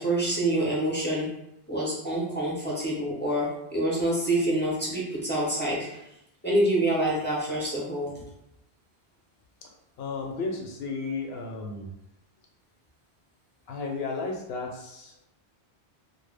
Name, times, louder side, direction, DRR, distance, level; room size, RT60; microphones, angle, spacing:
voice 1, 0.0-1.3 1.7-6.0 6.4-8.1, right 1 dB, 15° left, -6 dB, 0.4 m, -26 dB
voice 2, 10.0-11.9 13.7-15.3, left 3 dB, 70° left, 1 dB, 0.8 m, -33 dB
2.1 x 2.1 x 3.3 m, 0.83 s
omnidirectional pair, 1.1 m